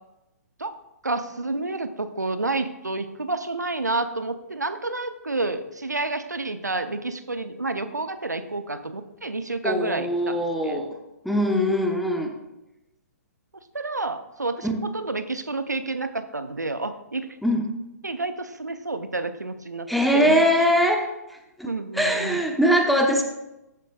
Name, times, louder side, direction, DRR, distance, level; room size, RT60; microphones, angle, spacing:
voice 1, 1.0-10.8 13.7-14.7 14.9-17.3 18.0-20.4 21.6-22.4, right 2 dB, 85° right, 10 dB, 0.7 m, -29 dB
voice 2, 9.6-10.9 11.2-12.3 14.6-14.7 17.4-17.6 19.9-21.1 21.6-23.2, equal, ahead, 2 dB, 1.0 m, -22 dB
14.0 x 9.2 x 2.4 m, 0.94 s
figure-of-eight pair, 125°, 9 cm